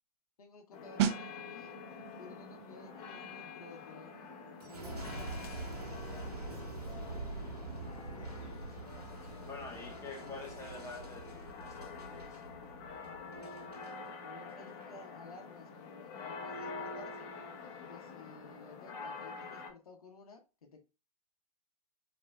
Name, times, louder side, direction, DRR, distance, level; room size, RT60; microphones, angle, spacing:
voice 1, 0.4-1.8 2.2-4.1 4.6-5.7 6.1-7.7 9.3-10.6 14.2-17.3 17.9-20.8, left 3 dB, 70° left, 1.1 m, -55 dB
sound 1, 0.7-19.7, left 4 dB, 40° left, 1.1 m, -47 dB
sound 2, 1.0-11.5 11.8-12.0, right 9 dB, 45° right, 0.7 m, -42 dB
Boom, 4.6-13.9 14.5-14.9, right 2 dB, 90° right, 1.6 m, -45 dB
voice 2, 9.4-12.4, left 3 dB, 15° left, 1.7 m, -47 dB
6.2 x 3.5 x 2.3 m
figure-of-eight pair, 105°, 19 cm